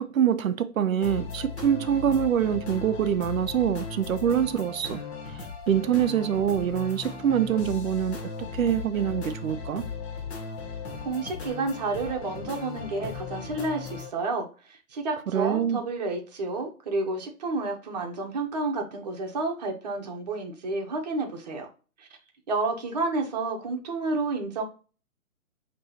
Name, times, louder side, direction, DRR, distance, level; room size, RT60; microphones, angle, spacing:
voice 1, 0.0-5.0 5.7-8.2 8.5-9.8 15.3-15.8, right 9 dB, 65° right, 0.5 m, -25 dB
sound 1, 1.0-14.1, left 5 dB, 50° left, 1.0 m, -37 dB
voice 2, 11.0-21.7 22.0-22.1 22.5-24.6, right 3 dB, 30° right, 0.8 m, -30 dB
5.5 x 3.0 x 2.7 m
hypercardioid pair, 150°, 44 cm